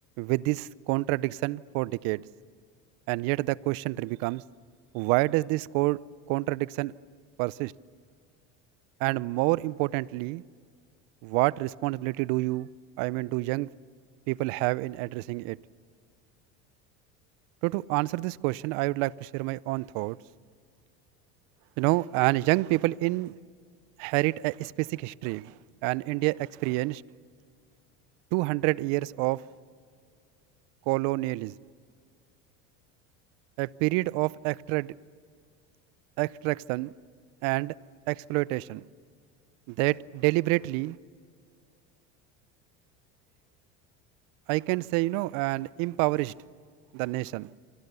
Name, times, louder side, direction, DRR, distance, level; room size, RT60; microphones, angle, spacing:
voice 1, 0.2-2.2 3.1-4.4 4.9-6.0 6.3-6.9 7.4-7.7 9.0-10.4 11.2-12.7 13.0-13.7 14.3-15.6 17.6-20.2 21.8-23.3 24.0-25.5 25.8-27.0 28.3-29.4 30.9-31.6 33.6-34.9 36.2-36.9 37.4-37.7 38.1-38.8 39.7-41.0 44.5-46.3 46.9-47.5, right 21 dB, 70° right, 21 dB, 0.7 m, -28 dB
27.0 x 27.0 x 6.9 m, 2.1 s
supercardioid pair, 105°, 35 cm